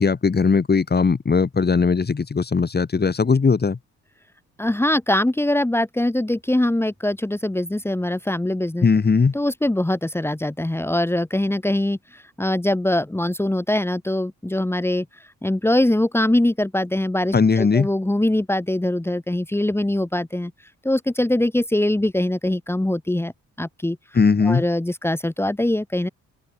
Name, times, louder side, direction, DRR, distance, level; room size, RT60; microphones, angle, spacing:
voice 1, 0.0-3.8 8.8-9.3 17.3-17.9 24.1-24.6, left 5 dB, 35° left, 6.3 m, -19 dB
voice 2, 4.6-8.9 9.3-15.1 15.4-20.5 20.8-23.3 23.6-24.0 24.4-26.1, left 1 dB, 10° left, 2.3 m, -22 dB
cardioid pair, 90°, 30 cm